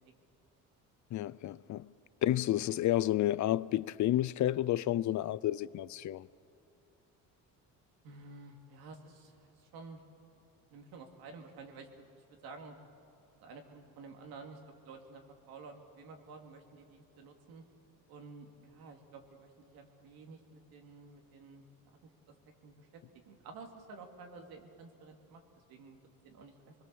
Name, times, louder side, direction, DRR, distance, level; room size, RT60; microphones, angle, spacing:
voice 1, 1.1-1.9 2.2-6.3, left 13 dB, 55° left, 0.6 m, -30 dB
voice 2, 8.0-10.0 10.7-12.0 12.4-12.7 13.3-14.6 14.8-17.6 18.1-22.1 22.6-25.4 25.7-26.0 26.2-26.7, right 4 dB, 85° right, 2.9 m, -51 dB
25.0 x 21.5 x 7.1 m
cardioid pair, 95°, 36 cm